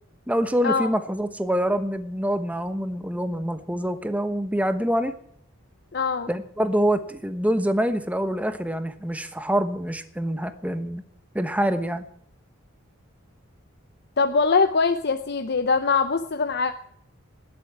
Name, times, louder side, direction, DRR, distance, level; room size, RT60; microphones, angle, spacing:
voice 1, 0.3-5.1 6.3-11.0 11.3-12.0, equal, 5° right, 9 dB, 1.1 m, -25 dB
voice 2, 5.9-6.3 14.2-16.7, left 4 dB, 55° left, 8 dB, 0.8 m, -22 dB
20.0 x 8.3 x 7.4 m, 0.67 s
head